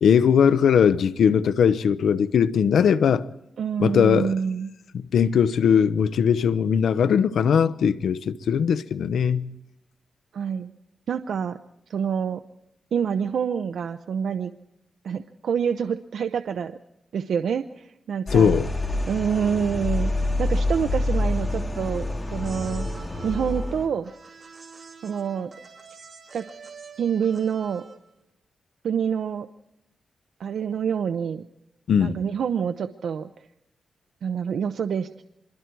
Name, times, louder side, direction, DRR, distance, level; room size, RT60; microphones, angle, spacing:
voice 1, 0.0-3.3 3.8-4.3 5.1-9.5 18.3-18.7 31.9-32.2, left 7 dB, 85° left, 0.8 m, -20 dB
voice 2, 3.6-4.7 10.3-10.7 11.1-11.6 11.9-12.4 12.9-14.5 15.0-16.8 17.1-18.5 19.1-20.1 20.4-22.9 23.2-24.1 25.0-25.5 26.3-26.4 27.0-27.8 28.8-29.5 30.4-31.4 32.0-33.3 34.2-35.1, right 7 dB, 80° right, 0.7 m, -27 dB
sound 1, 18.3-23.9, left 2 dB, 25° left, 3.9 m, -27 dB
sound 2, 22.3-28.2, right 5 dB, 45° right, 3.0 m, -46 dB
25.5 x 22.0 x 4.6 m
cardioid pair, 100°, 0 cm